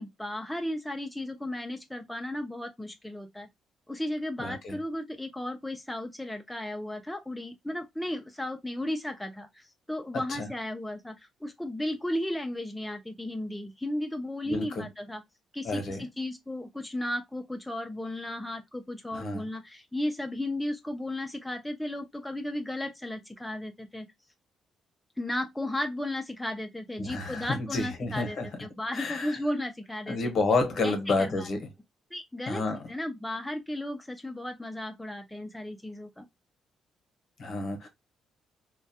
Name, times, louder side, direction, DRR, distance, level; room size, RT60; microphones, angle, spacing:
voice 1, 0.0-3.5 3.9-15.2 15.5-24.1 25.2-30.3 30.8-31.5 32.1-32.6 32.9-36.3, left 1 dB, 5° left, 0.3 m, -35 dB
voice 2, 4.4-4.8 10.3-10.5 14.4-14.8 15.6-16.0 19.1-19.5 27.0-28.5 28.9-29.4 30.1-31.6 32.5-32.8 37.4-37.9, left 3 dB, 55° left, 0.8 m, -30 dB
2.2 x 2.1 x 2.6 m
cardioid pair, 90°, 0 cm